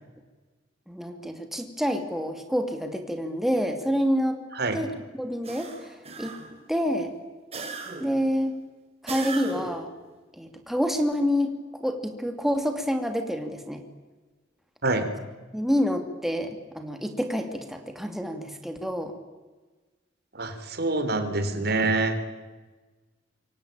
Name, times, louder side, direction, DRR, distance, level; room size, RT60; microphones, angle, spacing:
voice 1, 0.9-4.4 4.7-4.9 5.2-6.3 6.7-7.1 8.0-8.6 9.0-9.9 10.3-13.8 15.5-19.1, equal, ahead, 5 dB, 2.5 m, -28 dB
sound 1, 5.4-6.6 7.5-8.2 9.1-9.9, right 3 dB, 35° right, 4.5 m, -37 dB
voice 2, 20.3-22.2, right 2 dB, 60° right, 9 dB, 3.5 m, -26 dB
27.5 x 23.5 x 8.9 m, 1.3 s
head